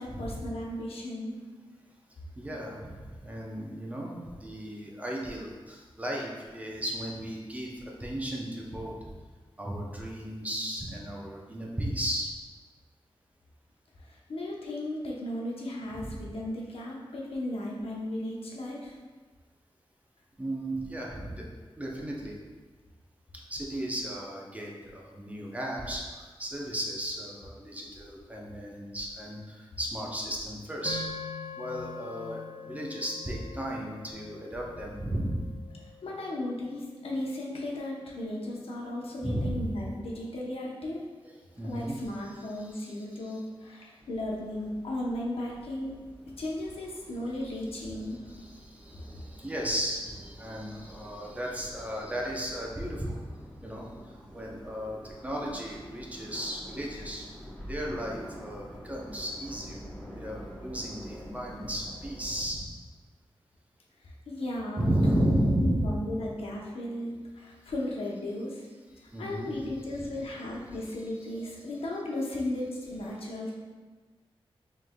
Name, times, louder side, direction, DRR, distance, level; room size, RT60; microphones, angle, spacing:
voice 1, 0.0-1.4 14.0-18.9 36.0-41.0 41.6-46.0 46.4-48.2 64.0-65.3 65.6-68.6 69.2-73.5, left 1 dB, 75° left, -3 dB, 0.8 m, -35 dB
voice 2, 2.4-8.9 9.6-12.3 15.9-16.1 20.4-21.4 21.8-22.4 23.5-31.0 31.6-35.5 39.2-39.7 41.2-42.0 42.6-43.4 48.3-53.2 53.6-53.9 54.3-57.3 57.6-59.8 60.1-62.6 64.8-65.9 69.1-70.1, right 1 dB, 15° right, -3 dB, 0.6 m, -34 dB
sound 1, 30.8-39.2, left 4 dB, 45° left, 0.5 m, -45 dB
sound 2, 44.0-62.4, equal, 10° left, 1.0 m, -47 dB
5.7 x 3.2 x 2.2 m, 1.4 s
wide cardioid pair, 145°, 10 cm